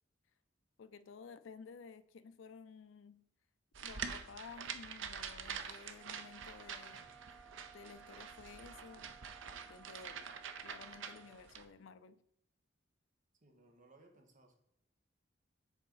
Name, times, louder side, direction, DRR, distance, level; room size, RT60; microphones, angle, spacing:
voice 1, 0.8-3.3 3.8-7.1 7.7-9.1 9.7-10.3 10.6-12.2, left 5 dB, 75° left, 0.4 m, -54 dB
sound 1, 3.7-11.6, right 6 dB, 70° right, 0.6 m, -46 dB
sound 2, 5.9-11.5, right 6 dB, 15° right, 0.7 m, -60 dB
voice 2, 13.4-14.6, right 2 dB, 40° right, 1.3 m, -63 dB
7.1 x 4.6 x 4.0 m
head